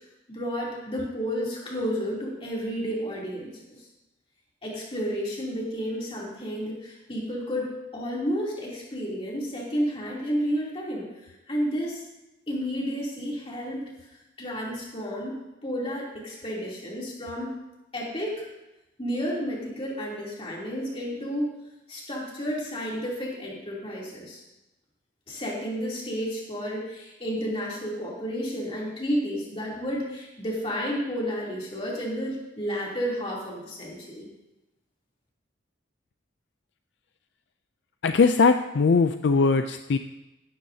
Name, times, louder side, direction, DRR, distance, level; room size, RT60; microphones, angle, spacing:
voice 1, 0.3-3.9 4.6-12.0 12.5-13.8 14.4-17.5 17.9-18.4 19.0-21.5 21.9-24.4 25.3-34.3, equal, 30° left, -4 dB, 3.1 m, -31 dB
voice 2, 38.0-40.0, left 4 dB, 60° left, 8 dB, 0.4 m, -20 dB
16.0 x 12.0 x 2.8 m, 1.0 s
head